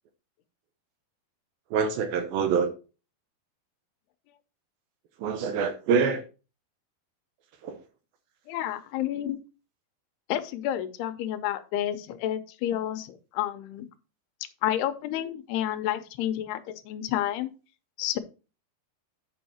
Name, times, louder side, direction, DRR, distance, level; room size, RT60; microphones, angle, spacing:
voice 1, 1.7-2.7 5.2-6.2 7.6-7.8, right 6 dB, 75° right, 2.4 m, -25 dB
voice 2, 8.5-9.4 10.3-13.9 14.6-17.5 18.0-18.2, left 12 dB, 80° left, 2.7 m, -30 dB
8.4 x 5.5 x 4.2 m
omnidirectional pair, 4.7 m